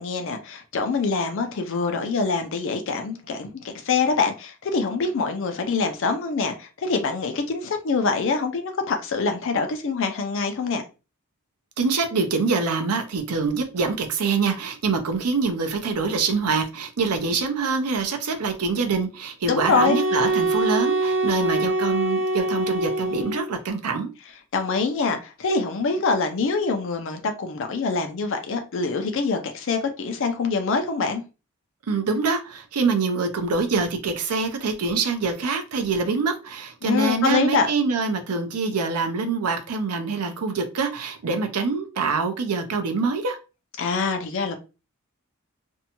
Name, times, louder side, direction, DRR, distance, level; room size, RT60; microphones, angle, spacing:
voice 1, 0.0-10.8 19.5-20.0 24.5-31.2 36.8-37.7 43.8-44.6, left 4 dB, 60° left, 0.4 m, -25 dB
voice 2, 11.8-24.1 31.9-43.4, right 4 dB, 85° right, 0.6 m, -25 dB
sound 1, 19.7-23.6, right 2 dB, 55° right, 1.1 m, -24 dB
2.6 x 2.2 x 2.8 m
head